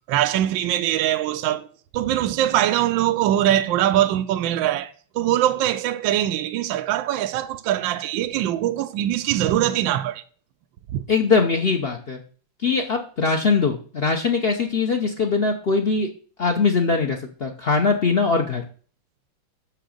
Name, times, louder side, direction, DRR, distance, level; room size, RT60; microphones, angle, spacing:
voice 1, 0.1-1.7 1.9-10.2 10.9-11.0, right 12 dB, 75° right, 1.3 m, -22 dB
voice 2, 11.1-12.2 12.6-16.1 16.4-18.6, left 4 dB, 75° left, 0.5 m, -21 dB
6.5 x 6.0 x 6.4 m
omnidirectional pair, 2.2 m